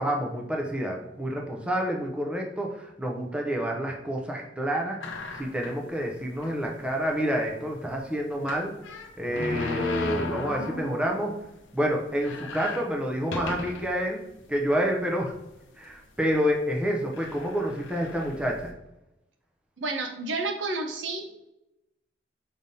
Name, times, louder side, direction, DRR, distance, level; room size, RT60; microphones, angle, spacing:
voice 1, 0.0-5.0 5.3-8.7 9.2-11.4 11.7-14.2 14.5-15.3 15.8-18.7, equal, 5° right, 0 dB, 0.6 m, -28 dB
sound 1, 5.0-5.9 6.4-6.5 6.8-6.9 8.4-11.4 11.7-11.8 12.1-14.0 14.6-14.7 15.6-15.8 16.7-16.8 17.1-18.7, left 2 dB, 75° left, 0.7 m, -35 dB
voice 2, 19.8-21.3, right 3 dB, 70° right, 4 dB, 0.8 m, -30 dB
5.3 x 3.3 x 2.7 m, 0.89 s
head